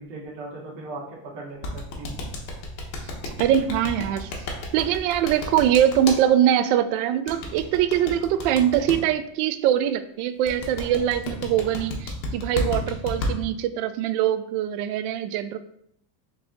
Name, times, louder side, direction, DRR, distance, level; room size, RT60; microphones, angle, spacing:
voice 1, 0.0-2.2, right 2 dB, 90° right, -4 dB, 1.5 m, -38 dB
sound 1, 1.6-6.2 7.3-8.9 10.5-13.3, left 2 dB, 85° left, 1.2 m, -31 dB
voice 2, 3.3-4.3 4.7-15.6, right 10 dB, 65° right, 12 dB, 0.5 m, -23 dB
4.0 x 2.8 x 3.7 m, 0.69 s
supercardioid pair, 130°, 49 cm